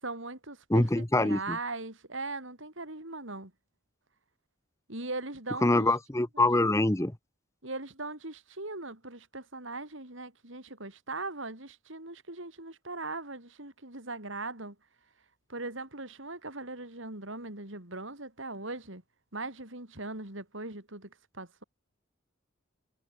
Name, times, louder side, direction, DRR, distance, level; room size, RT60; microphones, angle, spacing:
voice 1, 0.0-3.5 4.9-5.9 6.3-6.7 7.6-14.7 15.5-19.0 19.3-21.6, right 2 dB, 65° right, 5.0 m, -40 dB
voice 2, 0.7-1.6 5.6-7.1, left 2 dB, 15° left, 1.0 m, -25 dB
head